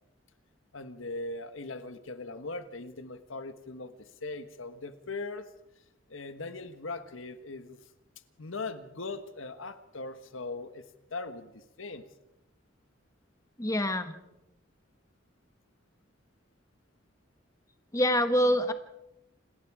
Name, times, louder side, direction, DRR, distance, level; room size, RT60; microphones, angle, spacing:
voice 1, 0.7-5.5 6.1-7.8 8.4-12.0 18.4-18.7, left 3 dB, 90° left, 10 dB, 1.4 m, -40 dB
voice 2, 13.6-14.2 17.9-18.7, equal, 15° left, 8 dB, 1.2 m, -25 dB
28.0 x 19.5 x 4.9 m, 0.92 s
head